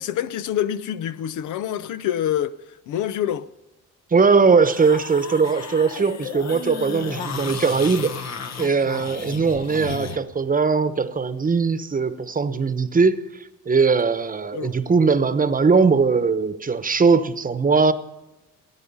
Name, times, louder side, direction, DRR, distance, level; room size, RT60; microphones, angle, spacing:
voice 1, 0.0-3.5 14.5-14.8, left 10 dB, 80° left, 0.7 m, -26 dB
voice 2, 4.1-17.9, right 4 dB, 30° right, 1.0 m, -20 dB
sound 1, 4.6-10.2, left 6 dB, 60° left, 1.2 m, -33 dB
18.5 x 9.7 x 5.5 m
cardioid pair, 90°, 30 cm